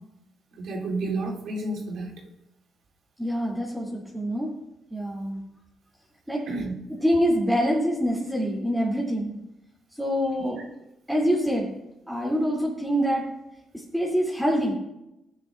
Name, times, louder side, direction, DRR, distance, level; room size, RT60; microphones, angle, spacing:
voice 1, 0.5-2.2 6.5-6.7 10.6-10.7, right 2 dB, 70° right, -3 dB, 3.2 m, -31 dB
voice 2, 3.2-4.5 4.9-5.4 6.3-6.5 6.9-9.4 10.0-10.6 11.1-11.7 12.1-13.3 13.7-14.7, equal, 5° right, -5 dB, 2.9 m, -25 dB
14.5 x 9.5 x 2.5 m, 0.89 s
cardioid pair, 90°, 0 cm